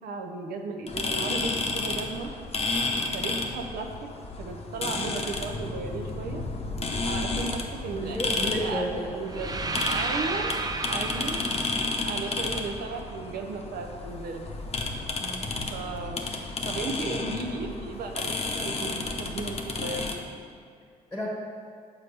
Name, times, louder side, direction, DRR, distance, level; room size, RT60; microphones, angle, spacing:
voice 1, 0.0-2.3 2.9-3.9 4.4-6.4 7.0-9.6 9.9-10.6 10.9-11.4 12.0-14.5 15.7-16.4 16.6-20.1, right 4 dB, 70° right, 3 dB, 0.6 m, -35 dB
sound 1, 0.9-20.1, left 3 dB, 40° left, 0.8 m, -32 dB
voice 2, 7.9-9.2 15.2-15.5 21.1-21.3, equal, 10° left, -5 dB, 1.2 m, -32 dB
sound 2, 9.2-13.3, right 3 dB, 25° right, 0.5 m, -33 dB
6.8 x 4.6 x 3.3 m, 2.3 s
supercardioid pair, 60°, 16 cm